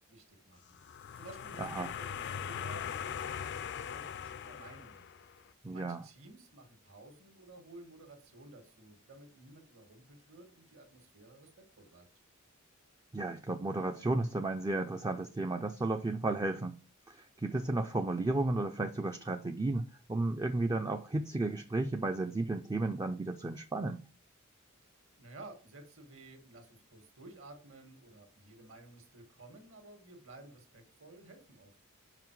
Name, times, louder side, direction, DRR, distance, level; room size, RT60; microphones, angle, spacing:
voice 1, 0.1-5.1 5.7-12.1 25.2-31.8, right 2 dB, 65° right, 1.8 m, -54 dB
sound 1, 0.7-5.4, left 8 dB, 55° left, 0.4 m, -41 dB
voice 2, 1.6-1.9 5.6-6.0 13.1-16.8 17.1-24.0, right 2 dB, 20° right, 0.4 m, -33 dB
5.9 x 4.9 x 4.6 m
head